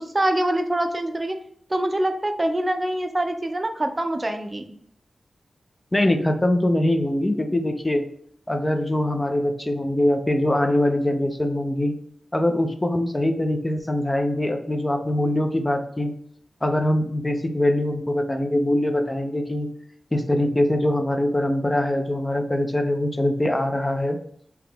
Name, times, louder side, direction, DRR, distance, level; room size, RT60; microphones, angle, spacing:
voice 1, 0.0-1.4 1.7-4.6, right 1 dB, 30° right, 6 dB, 0.5 m, -24 dB
voice 2, 5.9-8.1 8.5-11.9 12.3-16.1 16.6-19.7 20.1-24.2, left 1 dB, 20° left, 6 dB, 0.5 m, -23 dB
3.9 x 2.9 x 3.4 m, 0.63 s
cardioid pair, 65°, 0 cm